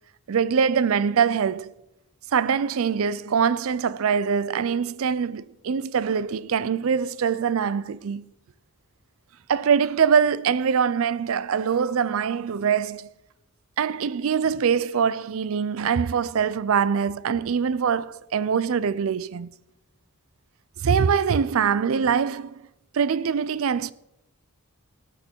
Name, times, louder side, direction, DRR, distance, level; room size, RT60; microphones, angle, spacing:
voice 1, 0.3-1.7 2.3-8.3 9.5-13.1 13.8-19.5 20.8-22.6 22.9-23.9, right 6 dB, 65° right, 0.4 m, -23 dB
17.5 x 6.5 x 4.5 m
head